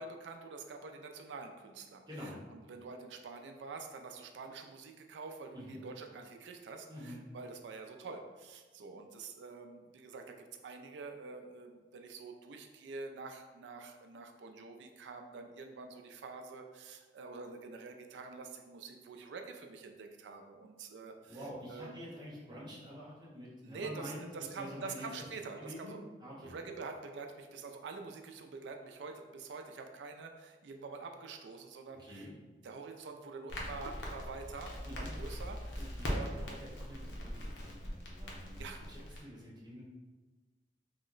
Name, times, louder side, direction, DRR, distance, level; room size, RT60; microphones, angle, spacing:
voice 1, 0.0-21.4 21.7-22.0 23.6-26.0 26.4-32.3 32.6-36.6 38.6-38.9, right 4 dB, 80° right, 5 dB, 0.4 m, -46 dB
voice 2, 2.1-2.4 5.5-5.8 6.9-7.2 21.3-24.2 24.5-25.0 25.6-26.6 32.0-32.3 34.8-35.1 35.8-39.9, equal, 25° right, -6 dB, 0.8 m, -47 dB
Crackle, 33.5-39.2, equal, 85° left, 0.7 m, -41 dB
2.9 x 2.1 x 3.8 m, 1.3 s
head